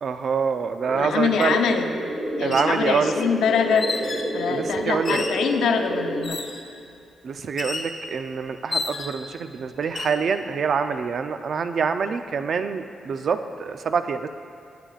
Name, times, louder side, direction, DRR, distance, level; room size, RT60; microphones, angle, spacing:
voice 1, 0.0-1.6 2.4-3.1 4.5-5.2 7.2-14.3, right 6 dB, 55° right, 9 dB, 0.5 m, -26 dB
sound 1, 0.8-6.3, right 1 dB, 15° right, 1.9 m, -29 dB
voice 2, 0.9-1.9 2.4-6.4, left 6 dB, 90° left, 5 dB, 0.8 m, -24 dB
sound 2, 1.4-1.5 2.3-2.8 3.8-4.3 5.0-5.5 6.2-6.7 7.6-7.9 8.7-9.3 9.8-10.2, left 3 dB, 35° left, 1.1 m, -31 dB
20.5 x 8.7 x 2.5 m, 2.4 s
cardioid pair, 105°, 0 cm